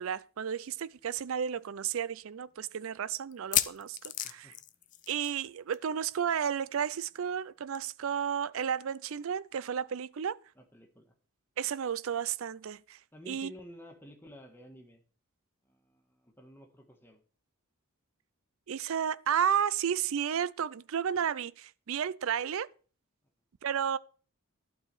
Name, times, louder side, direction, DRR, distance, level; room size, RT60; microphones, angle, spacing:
voice 1, 0.0-4.0 4.2-4.5 5.1-10.4 11.6-13.0 13.3-13.5 18.7-22.7 23.6-24.0, right 8 dB, 60° right, 0.4 m, -32 dB
sound 1, 0.6-0.7 1.0-1.1 1.7-1.8 3.3-5.5 5.7-5.9 6.2-6.3 7.7-7.8, left 12 dB, 35° left, 0.5 m, -33 dB
voice 2, 10.5-11.1 13.1-15.0 15.6-17.2, left 1 dB, 10° left, 1.6 m, -52 dB
11.5 x 4.7 x 7.6 m
head